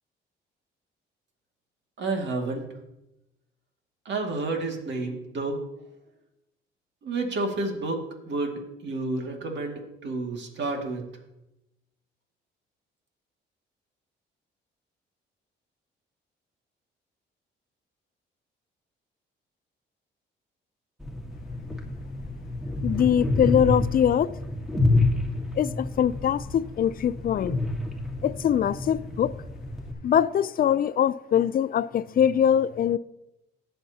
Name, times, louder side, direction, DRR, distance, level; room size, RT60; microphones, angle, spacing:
voice 1, 2.0-2.7 4.0-5.6 7.0-11.2, right 2 dB, 65° right, 2.3 m, -30 dB
sound 1, 21.0-29.9, left 2 dB, ahead, 1.8 m, -29 dB
voice 2, 22.8-24.3 25.6-27.6 28.2-29.3 30.0-33.0, left 9 dB, 45° left, 0.5 m, -23 dB
19.5 x 6.8 x 2.9 m
cardioid pair, 90°, 20 cm